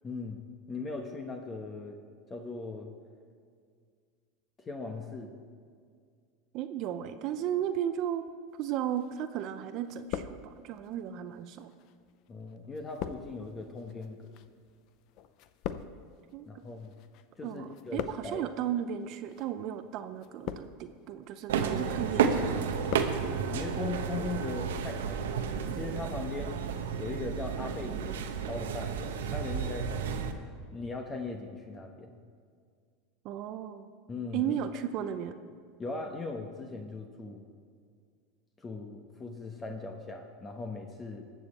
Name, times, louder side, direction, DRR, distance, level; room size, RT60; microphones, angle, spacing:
voice 1, 0.0-0.4 0.7-2.0 2.3-2.9 4.6-5.3 12.3-14.4 16.5-16.9 17.4-18.4 23.4-25.3 25.7-26.6 27.0-30.3 30.7-32.2 34.1-34.6 35.8-37.4 38.6-41.2, left 3 dB, 25° left, 3 dB, 1.1 m, -39 dB
voice 2, 6.5-8.3 8.6-11.7 16.3-16.5 17.4-22.8 33.2-33.9 34.3-35.4, right 10 dB, 50° right, 10 dB, 0.6 m, -35 dB
sound 1, 9.0-9.6 9.8-10.9 11.6-17.2 17.5-18.5 19.2-19.5 20.2-21.0 21.4-21.9 22.2-23.2 23.5-23.6, left 9 dB, 55° left, 0.6 m, -41 dB
sound 2, 21.5-30.3, right 6 dB, 85° right, 0.9 m, -32 dB
19.0 x 7.1 x 4.3 m, 2.1 s
supercardioid pair, 110°, 0 cm